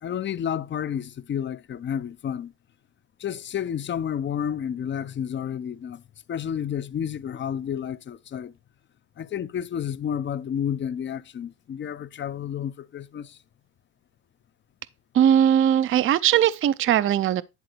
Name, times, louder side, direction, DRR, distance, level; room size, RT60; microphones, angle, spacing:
voice 1, 0.0-2.5 3.2-6.0 6.3-8.5 9.2-13.4, left 9 dB, 25° left, 0.5 m, -30 dB
voice 2, 15.1-17.4, right 10 dB, 30° right, 0.5 m, -19 dB
10.5 x 4.0 x 4.5 m
supercardioid pair, 100°, 45 cm